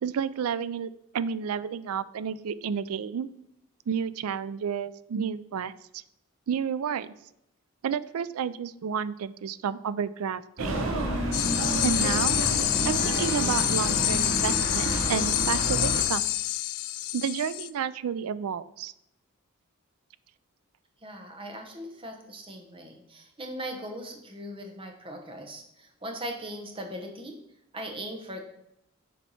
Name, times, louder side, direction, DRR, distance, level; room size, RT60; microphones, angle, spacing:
voice 1, 0.0-3.3 3.9-6.0 6.5-7.1 7.8-10.8 11.8-12.3 12.8-16.3 17.1-18.9, right 7 dB, 75° right, 16 dB, 0.4 m, -31 dB
sound 1, 10.6-16.0, right 2 dB, 60° right, 1.1 m, -29 dB
sound 2, 11.3-17.7, left 15 dB, 80° left, 0.3 m, -27 dB
voice 2, 21.0-27.4 27.7-28.4, equal, 25° right, 3 dB, 0.9 m, -39 dB
7.1 x 4.6 x 4.2 m, 0.81 s
head